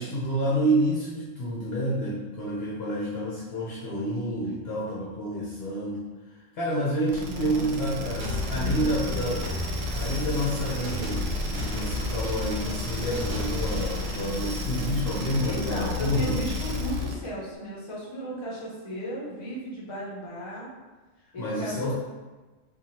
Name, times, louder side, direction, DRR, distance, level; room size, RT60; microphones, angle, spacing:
voice 1, 0.0-6.0 6.5-9.4 9.9-16.4 21.4-21.9, right 1 dB, 60° left, -6 dB, 0.9 m, -29 dB
sound 1, 7.1-17.3, left 3 dB, 90° right, 1.0 m, -32 dB
voice 2, 7.2-7.7 8.0-8.2 8.5-9.2 15.4-20.7 21.3-21.9, right 1 dB, 25° left, -6 dB, 0.8 m, -35 dB
sound 2, 8.2-13.8, left 1 dB, 55° right, 0.8 m, -33 dB
4.5 x 2.5 x 2.7 m, 1.3 s
omnidirectional pair, 1.3 m